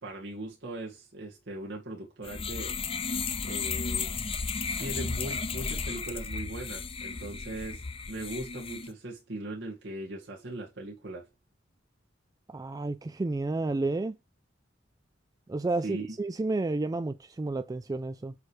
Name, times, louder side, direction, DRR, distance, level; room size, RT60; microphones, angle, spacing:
voice 1, 0.0-2.7 3.4-4.1 4.8-11.3 15.8-16.2, right 1 dB, 65° right, 2.0 m, -39 dB
sound 1, 2.2-8.9, left 5 dB, 30° left, 0.7 m, -34 dB
voice 2, 12.5-14.2 15.5-18.3, right 2 dB, 20° right, 0.3 m, -31 dB
8.1 x 3.3 x 4.8 m
head